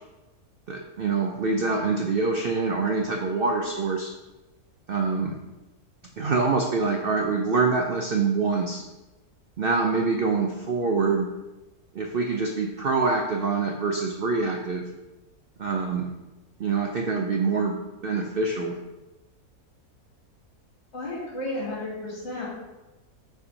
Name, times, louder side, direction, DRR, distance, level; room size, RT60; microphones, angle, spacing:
voice 1, 0.7-4.1 4.9-5.3 6.2-8.8 9.6-11.3 11.9-14.8 15.6-16.1 16.6-17.8 18.0-18.8, right 4 dB, 70° right, 1 dB, 0.5 m, -25 dB
voice 2, 20.9-22.5, left 1 dB, 45° left, -5 dB, 2.1 m, -32 dB
7.1 x 3.5 x 5.0 m, 1.1 s
omnidirectional pair, 1.7 m